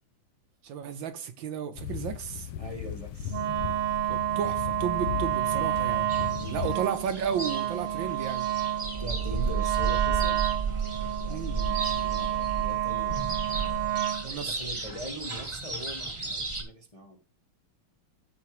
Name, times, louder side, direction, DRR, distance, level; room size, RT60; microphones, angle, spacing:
voice 1, 0.6-2.5 3.7-3.8 4.1-6.1 6.5-8.5 11.3-11.6 14.2-14.5, right 8 dB, 70° right, 1.4 m, -33 dB
sound 1, 1.8-6.7, left 10 dB, 75° left, 1.6 m, -36 dB
voice 2, 2.6-3.5 6.2-6.8 9.0-10.5 11.2-13.3 14.0-17.2, equal, 20° left, 0.9 m, -42 dB
Wind instrument woodwind instrument, 3.3-14.3, right 12 dB, 90° right, 1.9 m, -30 dB
sound 2, 6.1-16.6, right 4 dB, 15° right, 1.3 m, -33 dB
14.0 x 4.8 x 3.0 m
omnidirectional pair, 2.4 m